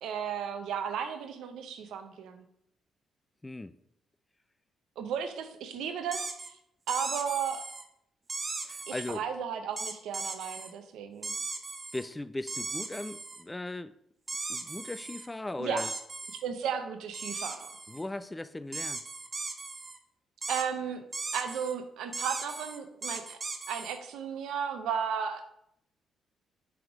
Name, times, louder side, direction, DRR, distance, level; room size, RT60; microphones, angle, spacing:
voice 1, 0.0-2.4 5.0-6.3 6.9-7.6 8.9-11.3 15.6-15.9 16.4-17.7 20.5-21.1 21.3-23.4 23.7-25.4, right 7 dB, 80° right, 8 dB, 0.7 m, -34 dB
voice 2, 3.4-3.8 8.6-9.3 11.9-14.0 14.5-15.9 17.9-19.0, left 2 dB, 15° left, 14 dB, 0.3 m, -38 dB
sound 1, 6.1-6.5 6.9-7.8 8.3-9.2 9.8-10.7 11.2-12.1 12.5-13.4 14.3-15.3 15.8-16.4 17.1-18.0 18.7-20.0 20.4-20.7 21.1-21.7 22.1-24.0, right 3 dB, 30° right, 0.7 m, -38 dB
6.1 x 3.6 x 4.7 m, 0.75 s
cardioid pair, 90°, 0 cm